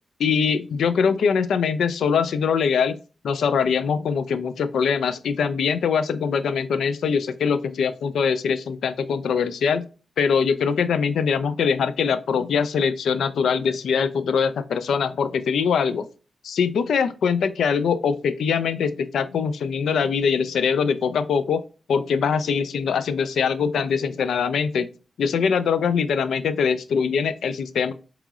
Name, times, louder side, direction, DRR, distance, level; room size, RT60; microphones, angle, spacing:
voice 1, 0.2-3.0 3.2-9.9 10.2-16.1 16.4-21.6 21.9-24.9 25.2-27.9, left 6 dB, 85° left, 13 dB, 0.3 m, -22 dB
4.6 x 3.0 x 2.3 m, 0.34 s
cardioid pair, 55°, 0 cm